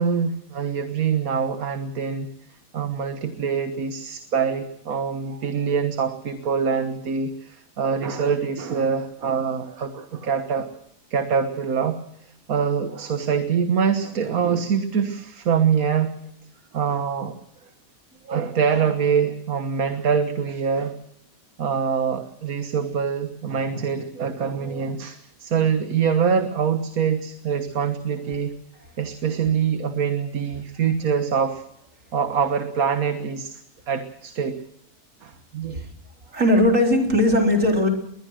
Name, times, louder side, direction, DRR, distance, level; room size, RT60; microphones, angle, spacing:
voice 1, 0.0-2.3 2.7-10.7 11.1-12.0 12.5-16.2 16.7-17.3 18.3-20.9 21.6-28.5 29.0-31.6 32.1-33.6 33.9-34.6 35.2-35.9, right 6 dB, 90° right, 8 dB, 1.8 m, -24 dB
voice 2, 36.3-37.9, left 1 dB, 65° right, 3 dB, 4.2 m, -18 dB
21.5 x 20.5 x 6.4 m, 0.78 s
omnidirectional pair, 1.5 m